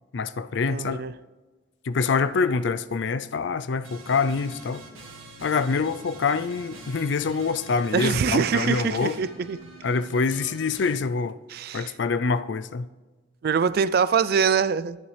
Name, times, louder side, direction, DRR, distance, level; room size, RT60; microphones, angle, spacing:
voice 1, 0.1-1.0 1.9-4.8 5.4-9.2 9.8-11.4 11.7-12.9, left 4 dB, 60° left, 0.4 m, -25 dB
voice 2, 0.7-1.1 7.9-9.6 11.5-11.9 13.4-15.0, right 6 dB, 50° right, 0.3 m, -24 dB
sound 1, 3.8-11.0, right 2 dB, 90° right, 1.9 m, -45 dB
11.0 x 11.0 x 3.3 m
head